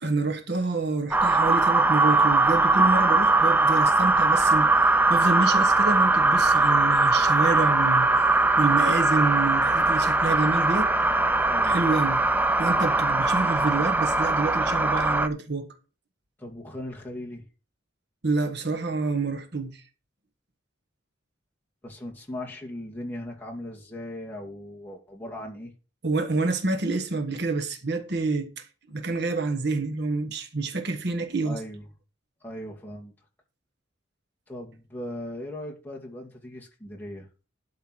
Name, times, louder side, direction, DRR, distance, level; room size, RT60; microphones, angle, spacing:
voice 1, 0.0-8.1 8.6-10.9 11.6-12.2 12.6-15.7 18.2-19.8 26.0-31.6, right 3 dB, 55° right, 1.2 m, -27 dB
sound 1, 1.1-15.3, right 2 dB, 10° right, 0.5 m, -21 dB
voice 2, 11.5-11.9 16.4-17.5 21.8-25.7 31.4-31.8 32.4-33.1 34.5-37.3, left 1 dB, 10° left, 2.3 m, -38 dB
12.0 x 4.6 x 6.1 m
head